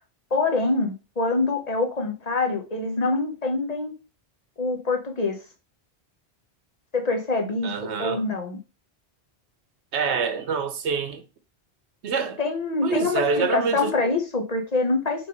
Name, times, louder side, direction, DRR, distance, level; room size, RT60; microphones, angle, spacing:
voice 1, 0.3-4.0 4.6-5.4 6.9-8.6 12.4-15.3, left 3 dB, 40° left, 1.1 m, -25 dB
voice 2, 7.6-8.2 9.9-11.2 12.0-12.4 12.8-13.9, right 5 dB, 85° right, 1.2 m, -26 dB
5.7 x 3.5 x 4.7 m
omnidirectional pair, 1.1 m